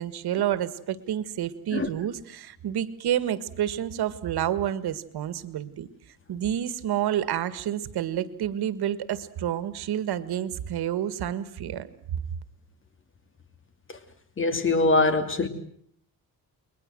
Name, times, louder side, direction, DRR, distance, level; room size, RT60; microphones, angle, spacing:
voice 1, 0.0-5.9 6.3-11.9, right 11 dB, 90° right, 1.8 m, -29 dB
voice 2, 14.4-15.5, left 2 dB, 30° left, 2.9 m, -22 dB
30.0 x 22.0 x 7.7 m
cardioid pair, 150°, 38 cm